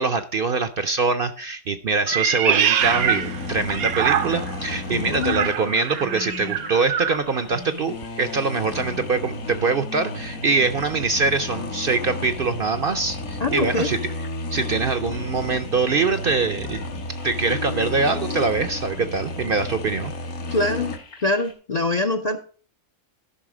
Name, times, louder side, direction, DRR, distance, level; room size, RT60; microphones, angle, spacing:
voice 1, 0.0-14.0 14.5-16.8 17.2-20.1, right 4 dB, 55° right, 10 dB, 0.6 m, -23 dB
Meow, 2.1-4.6 5.2-7.2, right 9 dB, 85° right, 1.2 m, -24 dB
sound 1, 2.8-21.0, left 2 dB, 75° left, 1.5 m, -33 dB
sound 2, 3.7-21.5, left 4 dB, 90° left, 3.2 m, -47 dB
voice 2, 4.9-5.5 13.4-13.9 20.5-20.9 21.2-22.4, left 2 dB, 50° left, 8 dB, 0.5 m, -24 dB
13.0 x 5.6 x 4.9 m, 0.41 s
omnidirectional pair, 1.5 m